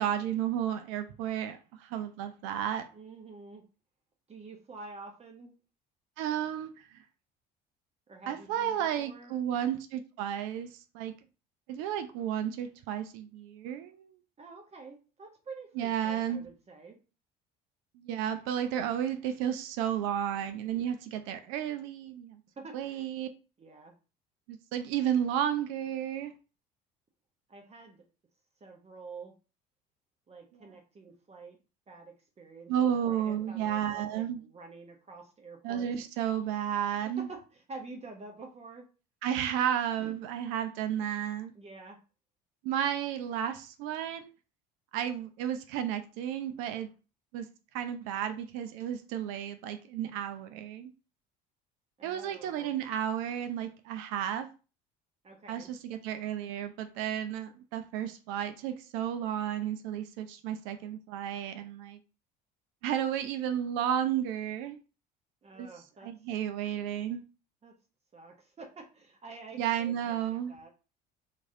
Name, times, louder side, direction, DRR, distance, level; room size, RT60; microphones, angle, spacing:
voice 1, 0.0-2.9 6.2-6.8 8.3-11.1 11.7-14.1 15.8-16.5 18.0-22.4 22.7-23.3 24.5-26.3 32.7-34.4 35.6-37.3 39.2-41.5 42.6-44.3 44.9-46.9 47.3-47.5 47.7-50.9 52.0-54.5 55.5-62.0 62.8-64.8 65.6-65.7 66.0-67.2 69.6-70.6, right 10 dB, 70° right, 0.4 m, -32 dB
voice 2, 2.9-3.6 4.3-5.6 8.1-9.4 14.4-17.0 22.6-23.1 23.6-23.9 27.5-28.0 28.6-29.3 30.3-31.6 31.9-35.9 37.0-38.9 40.0-40.2 41.5-42.0 52.0-52.7 55.2-55.7 65.4-66.1 67.6-67.7 68.1-70.7, right 3 dB, 30° right, 0.8 m, -48 dB
3.1 x 2.5 x 2.6 m
hypercardioid pair, 75°, 21 cm